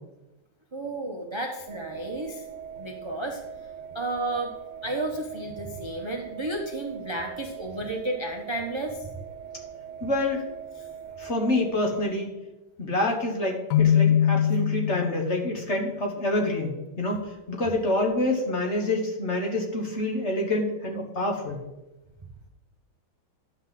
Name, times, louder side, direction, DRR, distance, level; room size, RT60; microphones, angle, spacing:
voice 1, 0.7-2.4 2.8-3.4 3.9-4.5 4.8-9.1 10.8-10.9, right 2 dB, 40° right, 1 dB, 0.4 m, -32 dB
sound 1, 1.7-12.1, right 8 dB, 80° right, 1.5 m, -41 dB
voice 2, 10.0-10.4 11.2-12.3 12.8-21.6, left 1 dB, 40° left, 1 dB, 1.4 m, -27 dB
Keyboard (musical), 13.7-15.6, left 9 dB, 70° left, 1.0 m, -22 dB
11.0 x 3.9 x 7.3 m, 1.0 s
omnidirectional pair, 2.2 m